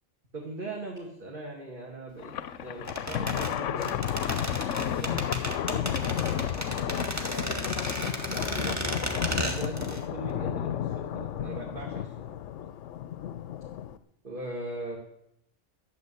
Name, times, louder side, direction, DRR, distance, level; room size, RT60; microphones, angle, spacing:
voice 1, 0.3-2.3 2.6-4.1 4.9-7.0 7.3-7.7 8.0-12.3 14.2-15.0, right 2 dB, 45° right, -2 dB, 2.4 m, -40 dB
Thunder, 2.2-14.0, left 10 dB, 80° left, 1.0 m, -32 dB
sound 1, 2.9-10.0 10.3-10.4, equal, 15° right, 1.7 m, -34 dB
13.0 x 7.5 x 9.7 m, 0.77 s
omnidirectional pair, 1.2 m